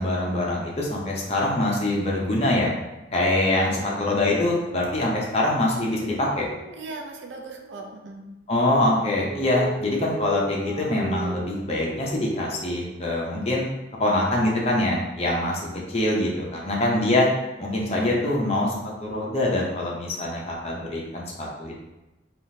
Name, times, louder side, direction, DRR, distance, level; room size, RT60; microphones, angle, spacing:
voice 1, 0.0-2.8 3.1-6.5 8.5-13.7 13.9-17.3 17.6-18.7 19.0-21.7, left 1 dB, 35° left, -3 dB, 0.6 m, -24 dB
voice 2, 3.6-4.1 6.7-8.3, right 3 dB, 70° right, 3 dB, 0.4 m, -39 dB
sound 1, 6.3-8.0 9.0-12.7, right 2 dB, 15° right, 0.5 m, -37 dB
3.5 x 2.4 x 2.7 m, 1.0 s
head